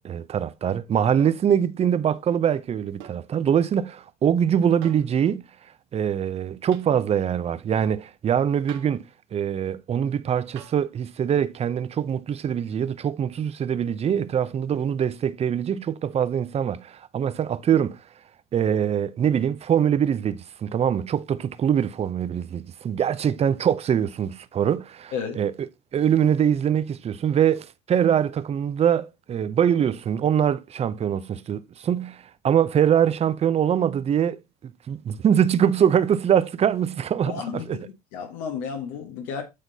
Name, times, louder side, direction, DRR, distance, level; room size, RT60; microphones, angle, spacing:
voice 1, 0.0-5.5 5.9-18.0 18.5-25.5 25.9-37.8, right 9 dB, 30° right, 0.6 m, -23 dB
sound 1, 1.2-1.5 3.0-3.3 4.8-5.1 6.7-6.9 8.7-9.0 10.6-10.9 12.6-12.7, right 12 dB, 65° right, 1.1 m, -46 dB
voice 2, 37.3-39.4, left 6 dB, 75° left, 1.3 m, -32 dB
8.3 x 3.8 x 4.0 m
supercardioid pair, 90°, 21 cm